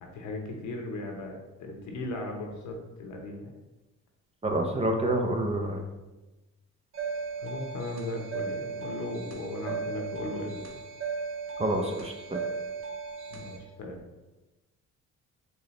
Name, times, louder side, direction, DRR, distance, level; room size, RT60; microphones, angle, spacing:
voice 1, 0.0-3.5 7.4-10.7 13.3-14.0, left 2 dB, 75° left, 1 dB, 1.0 m, -37 dB
voice 2, 4.4-5.8 11.6-12.4, right 1 dB, 20° right, 3 dB, 0.6 m, -28 dB
sound 1, 6.9-13.6, right 5 dB, 45° right, 0.9 m, -36 dB
4.5 x 3.2 x 3.2 m, 1.1 s
cardioid pair, 90°, 30 cm